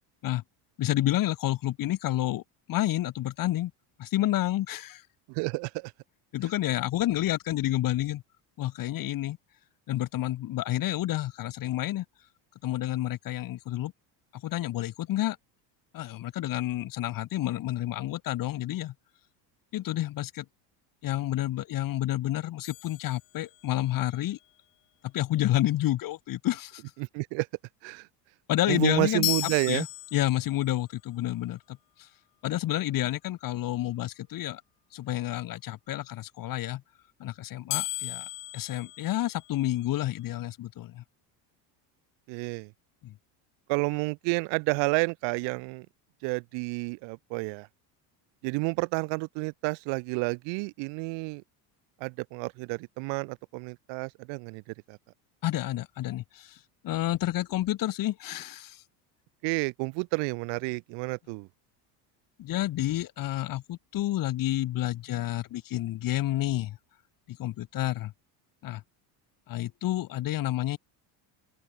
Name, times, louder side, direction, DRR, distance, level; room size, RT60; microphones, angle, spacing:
voice 1, 0.8-2.4 2.7-3.7 4.0-5.0 6.3-8.2 8.6-9.4 9.9-12.0 12.6-13.9 14.3-15.4 15.9-18.9 19.7-20.4 21.0-24.4 25.0-26.8 28.5-29.3 29.7-29.9 30.1-32.1 32.4-34.6 34.9-36.8 37.2-41.0 43.0-43.1 55.4-58.8 62.4-66.8 67.3-68.1 68.6-68.8 69.5-70.8, left 14 dB, 50° left, 3.4 m, -29 dB
voice 2, 5.3-5.9 27.0-27.5 27.8-28.1 28.7-29.9 42.3-42.7 43.7-45.9 46.2-47.7 48.4-51.4 52.0-54.6 54.9-55.0 59.4-61.5, right 31 dB, 75° right, 2.6 m, -30 dB
sound 1, 22.6-23.9 29.2-30.7 37.7-39.8, left 22 dB, 65° left, 2.5 m, -35 dB
open air
cardioid pair, 140°, 44 cm